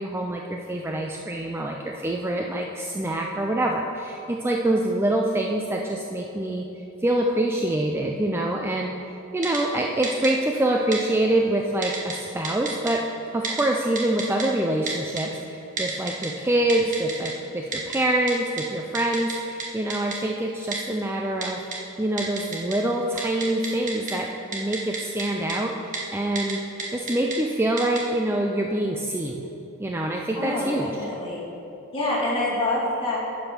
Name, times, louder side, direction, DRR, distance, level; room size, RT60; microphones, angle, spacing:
voice 1, 0.0-6.7 7.0-13.1 13.3-21.6 22.0-29.5 29.8-30.9, right 1 dB, 10° right, 1 dB, 0.4 m, -25 dB
Typing, 9.4-9.6 10.0-10.3 10.9-11.0 11.8-12.1 12.4-12.9 13.4-13.6 14.0-14.4 14.9-15.2 15.8-16.3 16.7-17.3 17.7-18.0 18.3-18.4 18.6-18.7 18.9-19.3 19.6-19.7 19.9-20.2 20.7-20.8 21.4-21.8 22.2-22.8 23.1-24.1 24.5-25.2 25.5-25.6 25.9-26.0 26.4-26.5 26.8-27.4 27.8-28.0, right 4 dB, 35° right, 1.3 m, -30 dB
voice 2, 30.4-31.4 31.9-33.2, left 1 dB, 25° left, -6 dB, 2.2 m, -26 dB
9.9 x 5.3 x 5.9 m, 3.0 s
head